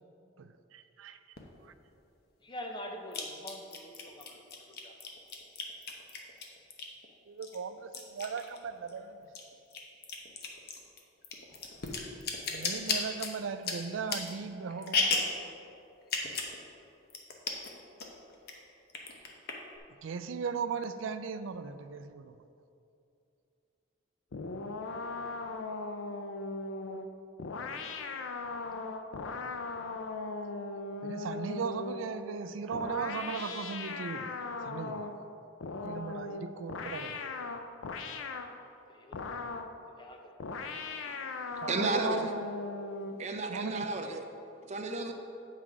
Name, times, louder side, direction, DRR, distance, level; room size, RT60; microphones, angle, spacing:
voice 1, 0.4-1.2 1.6-1.7 7.3-9.3 12.5-15.2 20.0-22.4 31.0-34.3 34.6-35.1 35.8-37.2 41.6-42.4 43.5-43.9, right 5 dB, 85° right, 12 dB, 0.4 m, -37 dB
sound 1, 1.4-1.5 3.1-7.1 7.4-9.0 9.2-15.4 16.0-16.6 16.8-16.9 17.1-17.7 18.0-18.5 18.9-19.8, left 4 dB, 55° left, 0.9 m, -35 dB
voice 2, 2.4-4.4 4.8-4.9 38.9-39.1 40.0-40.3, equal, 25° left, 2 dB, 0.7 m, -44 dB
sound 2, 24.3-32.1 32.7-35.2 35.6-38.6 39.1-39.8 40.4-43.2, left 3 dB, 90° left, 0.5 m, -38 dB
voice 3, 41.4-42.3 43.2-44.2 44.7-45.1, right 2 dB, 35° right, 4 dB, 0.6 m, -33 dB
7.7 x 5.7 x 4.8 m, 2.7 s
head